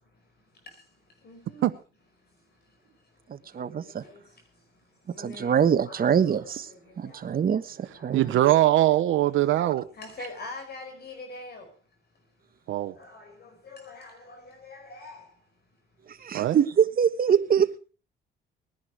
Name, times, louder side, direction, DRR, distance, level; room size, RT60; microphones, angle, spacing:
voice 1, 1.2-1.6 5.1-5.6 5.8-6.1 8.2-8.4 10.0-11.6 13.0-13.1 13.7-14.4 14.6-15.2, left 2 dB, 55° left, 5.0 m, -42 dB
voice 2, 3.5-4.0 5.2-6.7 7.0-8.2 16.2-17.8, right 8 dB, 45° right, 1.2 m, -24 dB
voice 3, 8.1-9.8 12.7-12.9 16.3-16.6, right 14 dB, 75° right, 0.8 m, -21 dB
19.5 x 10.5 x 4.8 m
cardioid pair, 90°, 20 cm